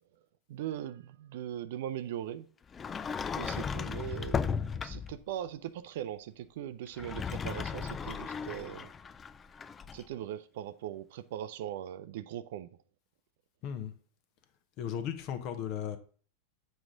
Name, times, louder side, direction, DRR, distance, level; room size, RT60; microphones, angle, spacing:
voice 1, 0.5-2.5 3.3-8.9 9.9-12.7, right 11 dB, 55° right, 0.5 m, -40 dB
Sliding door, 2.7-5.2 6.9-10.0, left 6 dB, 20° left, 0.3 m, -36 dB
voice 2, 14.8-16.0, left 9 dB, 40° left, 0.9 m, -36 dB
7.7 x 4.8 x 3.8 m
figure-of-eight pair, 90°, 0 cm